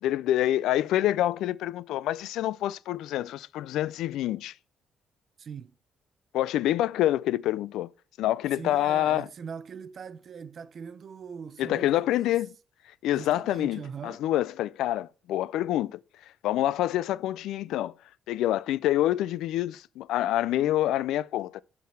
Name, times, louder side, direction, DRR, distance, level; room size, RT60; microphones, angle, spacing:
voice 1, 0.0-4.5 6.3-7.9 8.2-9.3 11.6-12.5 13.0-16.0 16.4-17.9 18.3-21.6, left 13 dB, 90° left, 0.3 m, -27 dB
voice 2, 5.4-5.7 8.5-12.4 13.1-14.2, right 6 dB, 50° right, 0.5 m, -41 dB
7.2 x 5.8 x 4.3 m
cardioid pair, 90°, 0 cm